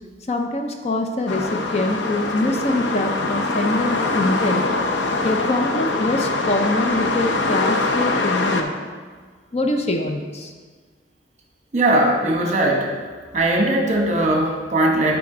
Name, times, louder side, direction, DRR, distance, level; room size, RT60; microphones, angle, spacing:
voice 1, 0.3-4.7 5.2-8.9 9.5-10.5, left 2 dB, 35° left, 4 dB, 0.6 m, -24 dB
sound 1, 1.3-8.6, left 2 dB, 85° left, 0.7 m, -23 dB
voice 2, 11.7-13.0 13.3-15.2, right 1 dB, 40° right, 1 dB, 1.1 m, -19 dB
9.4 x 4.9 x 3.8 m, 1.5 s
head